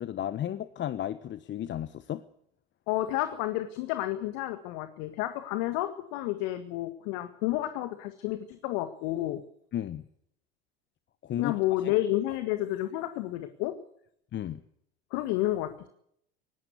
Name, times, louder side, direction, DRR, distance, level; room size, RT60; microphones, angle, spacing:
voice 1, 0.0-2.2 9.7-10.0 11.2-11.6 11.8-11.9 14.3-14.6, left 11 dB, 40° left, 13 dB, 1.2 m, -33 dB
voice 2, 2.9-9.4 11.4-13.8 15.1-15.9, left 15 dB, 65° left, 10 dB, 1.9 m, -30 dB
20.5 x 17.5 x 8.3 m, 0.70 s
hypercardioid pair, 75°, 29 cm